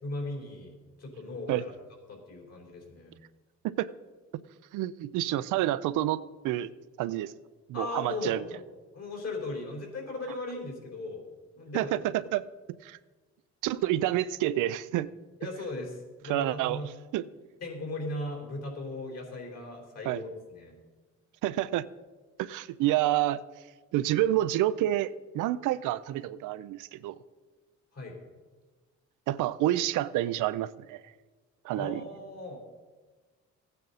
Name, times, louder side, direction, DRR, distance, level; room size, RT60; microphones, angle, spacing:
voice 1, 0.0-1.7 2.1-3.2 7.7-8.6 8.9-11.2 11.5-12.0 15.4-16.9 17.6-20.8 27.9-28.2 31.7-32.7, left 2 dB, 55° left, 1 dB, 4.0 m, -38 dB
voice 2, 4.7-6.7 7.0-7.3 7.7-8.4 11.7-12.0 12.3-12.4 12.8-13.0 13.6-15.1 16.2-17.2 20.1-20.2 21.4-21.8 22.4-23.4 23.9-27.2 29.3-31.0 31.6-32.1, right 14 dB, 90° right, 15 dB, 0.5 m, -28 dB
15.0 x 9.2 x 4.1 m, 1.3 s
cardioid pair, 90°, 30 cm